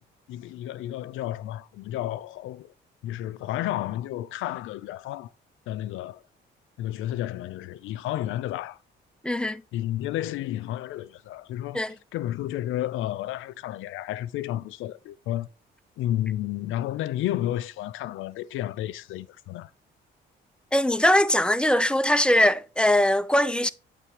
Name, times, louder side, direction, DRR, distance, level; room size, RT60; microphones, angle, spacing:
voice 1, 0.3-2.7 3.0-5.3 5.7-6.2 6.8-8.8 9.7-11.8 12.1-15.5 16.0-19.7, left 13 dB, 85° left, 0.5 m, -31 dB
voice 2, 9.2-9.6 11.7-12.0 20.7-23.7, left 1 dB, 5° left, 0.4 m, -21 dB
8.2 x 3.3 x 4.5 m
cardioid pair, 90°, 20 cm